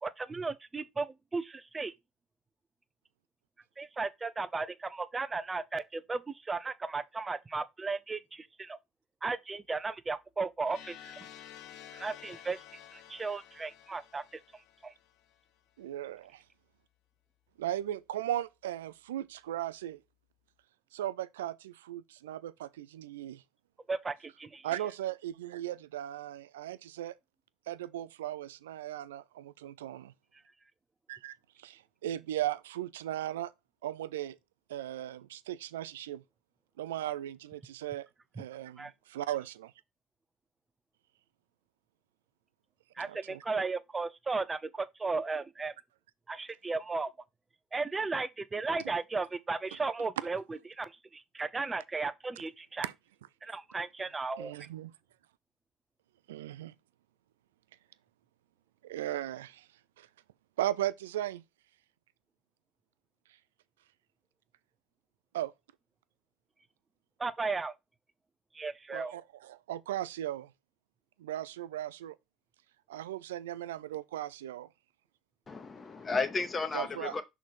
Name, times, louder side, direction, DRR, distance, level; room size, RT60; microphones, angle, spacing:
voice 1, 0.0-1.9 3.8-8.8 9.2-11.2 11.9-12.6 12.9-14.4 14.8-14.9 23.9-24.7 38.8-38.9 43.0-45.7 46.3-47.1 47.7-52.9 53.4-54.5 67.2-67.7 68.5-69.1, right 4 dB, 25° right, 0.7 m, -35 dB
sound 1, 10.6-15.5, left 11 dB, 65° left, 0.7 m, -51 dB
voice 2, 15.8-16.4 17.6-20.0 20.9-23.4 24.6-27.1 27.7-30.1 31.1-33.5 33.8-34.4 34.7-36.2 36.8-38.1 38.4-39.7 43.0-43.4 52.8-52.9 54.4-54.9 56.3-56.7 58.8-59.7 60.0-60.1 60.6-61.4 65.3-65.5 68.9-70.5 71.2-72.2 72.9-74.7 76.7-77.1, right 13 dB, 85° right, 0.4 m, -37 dB
voice 3, 75.5-77.2, left 4 dB, 30° left, 1.4 m, -33 dB
6.1 x 4.0 x 4.3 m
hypercardioid pair, 70°, 0 cm